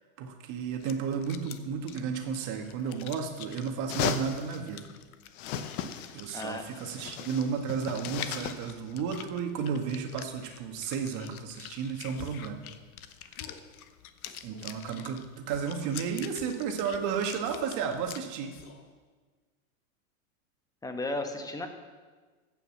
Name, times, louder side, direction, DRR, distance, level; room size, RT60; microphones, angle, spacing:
voice 1, 0.2-4.8 6.1-12.6 14.4-18.6, right 6 dB, 45° right, 4 dB, 1.9 m, -33 dB
sound 1, 0.7-18.2, left 10 dB, 80° left, 1.0 m, -47 dB
sound 2, 3.9-4.6 5.3-6.3 6.5-8.7, left 8 dB, 60° left, 1.1 m, -35 dB
voice 2, 6.3-6.6 20.8-21.7, left 2 dB, 10° left, 5 dB, 1.2 m, -34 dB
sound 3, 12.2-12.5 13.3-13.7 14.3-14.8 15.5-15.9 16.3-16.7 17.4-17.9 18.5-18.9, left 7 dB, 40° left, 1.5 m, -48 dB
15.0 x 5.8 x 7.2 m, 1.4 s
hypercardioid pair, 120°, 42 cm